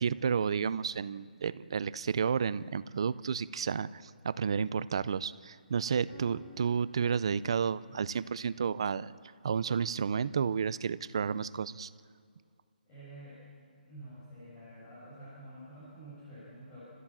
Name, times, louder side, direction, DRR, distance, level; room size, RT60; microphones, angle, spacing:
voice 1, 0.0-9.1 9.4-11.9, right 6 dB, 30° right, 17 dB, 0.5 m, -31 dB
sound 1, 5.8-10.8, equal, 55° left, 7.9 m, -56 dB
voice 2, 12.9-13.4 13.8-16.9, right 1 dB, 15° left, -10 dB, 6.8 m, -49 dB
29.5 x 15.0 x 7.4 m, 2.1 s
hypercardioid pair, 175°, 5 cm